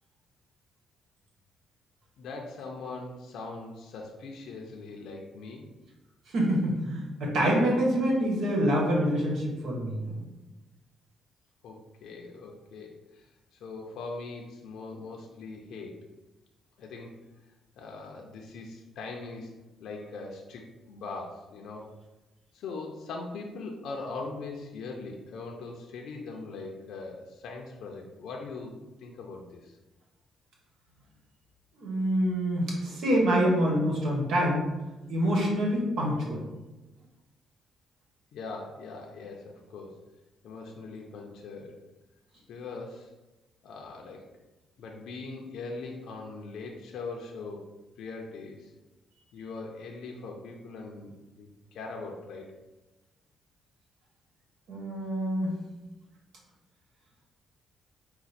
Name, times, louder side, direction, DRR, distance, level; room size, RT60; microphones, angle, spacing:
voice 1, 2.2-5.7 11.6-16.0 16.8-17.2 17.8-19.5 19.8-21.9 22.5-28.7 29.0-29.8 38.3-40.0 40.4-41.7 42.5-43.1 43.6-44.3 44.8-47.7 48.0-48.7 49.3-52.5, left 3 dB, 75° left, 0 dB, 0.5 m, -41 dB
voice 2, 6.3-10.3 31.8-34.6 35.1-36.4 54.7-55.6, equal, 75° right, -2 dB, 1.4 m, -26 dB
5.0 x 2.2 x 4.2 m, 1.1 s
cardioid pair, 90°, 0 cm